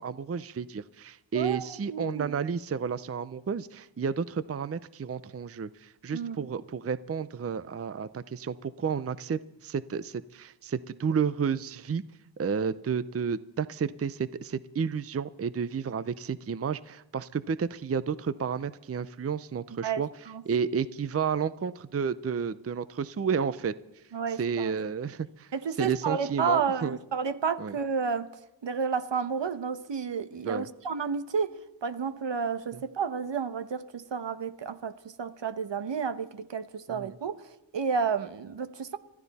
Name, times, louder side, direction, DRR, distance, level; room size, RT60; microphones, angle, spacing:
voice 1, 0.0-12.0 12.4-20.1 20.5-23.7 24.4-25.5 25.8-27.0 27.6-27.7 30.4-30.7 36.9-37.1, right 6 dB, 30° right, 0.5 m, -31 dB
voice 2, 1.3-2.4 6.1-6.5 19.8-20.4 24.1-24.7 25.5-28.3 28.6-31.5 31.8-39.0, right 6 dB, 65° right, 1.0 m, -31 dB
24.5 x 14.0 x 4.1 m
wide cardioid pair, 90°, 46 cm